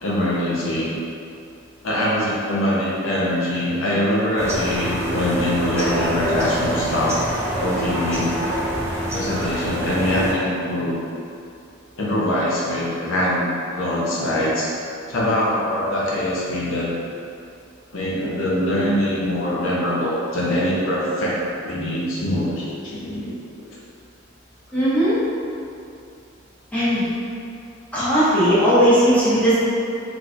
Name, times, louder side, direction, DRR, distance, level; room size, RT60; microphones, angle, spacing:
voice 1, 0.0-0.9 1.8-7.1 7.6-8.5 9.1-11.0 12.0-14.7 15.1-16.9 17.9-23.7, left 1 dB, 90° left, -6 dB, 0.7 m, -23 dB
sound 1, 4.4-10.3, equal, 15° right, 0.5 m, -26 dB
voice 2, 24.7-25.2 26.7-27.1 27.9-29.6, equal, 10° left, -13 dB, 1.2 m, -17 dB
4.0 x 3.0 x 2.5 m, 2.6 s
head